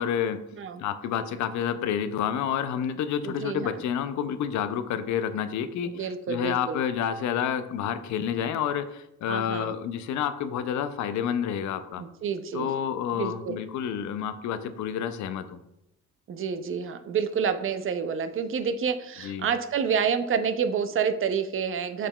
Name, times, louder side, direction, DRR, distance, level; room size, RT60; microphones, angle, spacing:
voice 1, 0.0-0.4 0.8-12.0 12.5-15.6 19.2-19.5, left 8 dB, 70° left, 11 dB, 0.4 m, -29 dB
voice 2, 3.2-3.7 5.8-6.8 9.3-9.7 12.0-12.7 13.2-13.6 16.3-22.1, right 6 dB, 45° right, 10 dB, 0.4 m, -28 dB
6.3 x 3.7 x 2.2 m, 0.87 s
cardioid pair, 90°, 30 cm